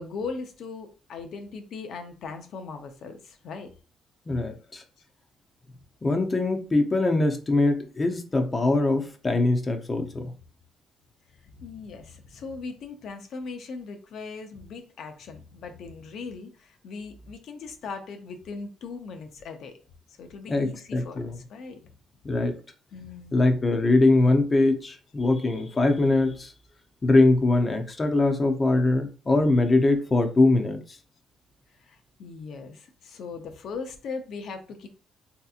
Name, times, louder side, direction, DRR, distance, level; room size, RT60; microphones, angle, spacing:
voice 1, 0.0-3.7 4.6-4.7 11.4-19.8 20.1-21.8 22.9-23.4 31.8-34.9, left 4 dB, 70° left, 6 dB, 0.6 m, -39 dB
voice 2, 4.3-4.8 6.0-10.3 20.5-21.4 22.2-22.5 23.3-26.5 27.0-30.8, left 2 dB, 30° left, 5 dB, 0.7 m, -22 dB
3.3 x 2.9 x 2.4 m, 0.36 s
cardioid pair, 90°, 0 cm